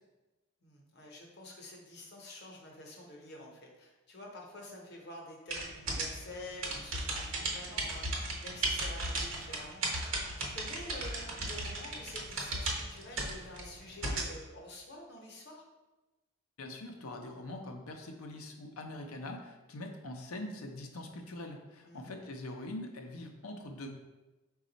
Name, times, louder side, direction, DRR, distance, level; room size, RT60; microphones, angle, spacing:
voice 1, 0.6-9.8 10.4-15.7 21.9-22.1, left 1 dB, 50° left, -1 dB, 0.8 m, -48 dB
sound 1, 5.5-14.3, right 2 dB, 65° right, 0.9 m, -36 dB
voice 2, 16.6-23.9, left 1 dB, 85° left, 4 dB, 0.6 m, -43 dB
5.0 x 2.3 x 3.9 m, 1.1 s
head